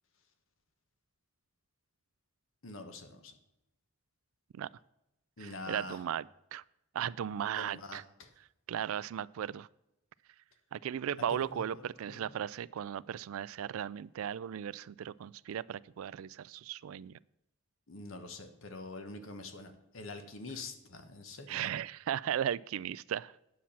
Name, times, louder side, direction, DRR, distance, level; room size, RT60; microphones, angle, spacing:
voice 1, 2.6-3.3 5.4-6.0 7.5-8.3 11.3-12.3 17.9-21.7, left 2 dB, 70° left, 7 dB, 1.2 m, -45 dB
voice 2, 5.4-6.2 6.5-6.6 6.9-8.0 8.7-9.7 10.7-17.2 21.5-23.3, right 9 dB, 75° right, 21 dB, 0.3 m, -36 dB
9.5 x 7.2 x 5.7 m, 0.89 s
head